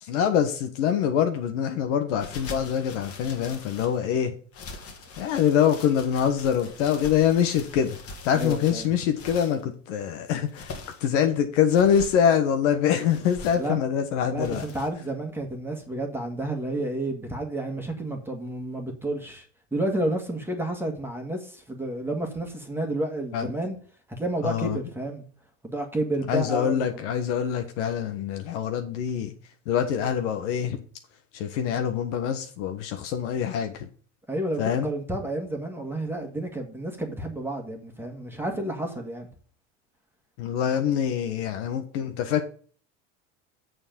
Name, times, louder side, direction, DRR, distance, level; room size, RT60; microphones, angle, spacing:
voice 1, 0.0-4.4 5.2-8.0 8.2-10.7 11.0-14.6 23.3-23.5 24.4-24.8 26.3-29.3 29.7-30.8 31.3-33.9 34.6-34.9 40.4-42.4, left 8 dB, 75° left, 1.4 m, -24 dB
sound 1, 2.2-4.0 4.5-9.6 10.3-11.1 11.7-12.2 13.1-13.7 14.4-14.9, left 3 dB, 40° left, 2.0 m, -42 dB
voice 2, 8.3-8.9 13.6-13.8 14.3-19.4 19.7-23.8 24.2-25.3 25.6-27.0 34.3-39.3, right 1 dB, 5° right, 1.8 m, -30 dB
7.2 x 6.5 x 5.2 m
supercardioid pair, 125°, 36 cm